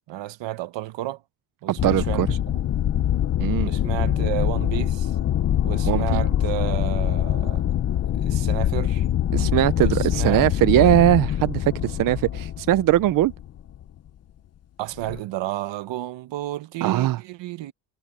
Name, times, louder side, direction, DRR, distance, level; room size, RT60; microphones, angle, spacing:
voice 1, 0.1-1.2 1.6-2.4 3.6-5.1 5.6-7.6 8.2-9.1 9.8-10.9 14.8-17.7, right 15 dB, 60° right, 1.1 m, -32 dB
voice 2, 1.7-2.3 3.4-3.7 5.9-6.2 9.3-13.3 16.8-17.2, right 13 dB, 45° right, 0.5 m, -20 dB
sound 1, 1.8-13.8 15.0-15.2, left 11 dB, 30° left, 0.6 m, -24 dB
cardioid pair, 145°, 49 cm